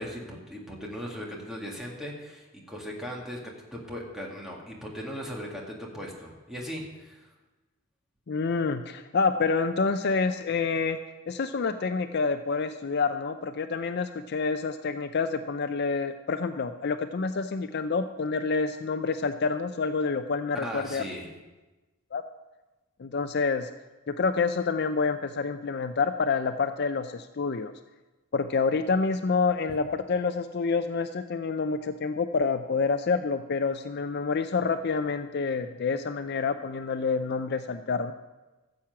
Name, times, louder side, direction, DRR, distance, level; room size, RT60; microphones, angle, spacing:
voice 1, 0.0-3.4 3.7-7.2 20.5-21.3, equal, ahead, -2 dB, 1.9 m, -38 dB
voice 2, 8.3-11.0 11.3-21.0 22.1-22.2 23.0-23.7 24.1-27.7 28.3-38.1, left 4 dB, 50° left, 9 dB, 0.4 m, -28 dB
14.5 x 7.3 x 5.8 m, 1.1 s
head